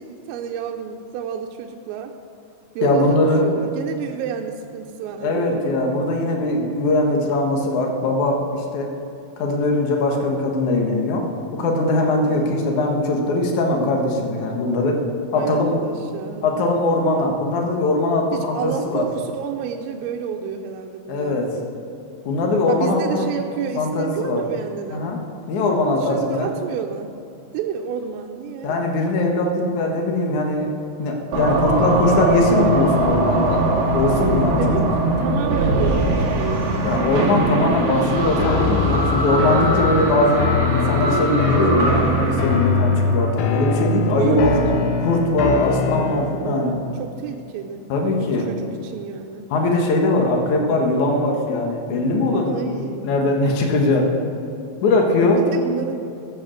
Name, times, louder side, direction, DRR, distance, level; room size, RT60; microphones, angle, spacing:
voice 1, 0.0-2.1 2.8-5.6 12.2-12.6 15.3-16.5 18.3-21.7 22.7-25.1 25.9-27.1 27.5-28.8 31.5-32.0 34.6-37.1 44.1-45.0 45.7-47.8 48.2-49.5 52.5-53.1 55.4-56.1, right 7 dB, 90° right, 2 dB, 3.4 m, -30 dB
voice 2, 2.8-3.4 5.2-8.9 9.4-11.3 11.5-15.0 15.3-15.7 16.4-19.1 21.1-21.5 22.3-23.3 23.8-24.4 24.9-25.2 25.5-26.5 28.6-30.7 31.0-33.6 33.9-34.8 36.8-44.5 45.0-46.8 47.9-48.5 49.5-54.1 54.8-55.4, left 2 dB, 70° left, 1 dB, 1.8 m, -20 dB
sound 1, 31.3-43.3, right 2 dB, 55° right, 2.2 m, -21 dB
sound 2, 38.4-46.5, left 4 dB, 90° left, 2.2 m, -23 dB
14.5 x 8.5 x 6.5 m, 2.7 s
omnidirectional pair, 5.8 m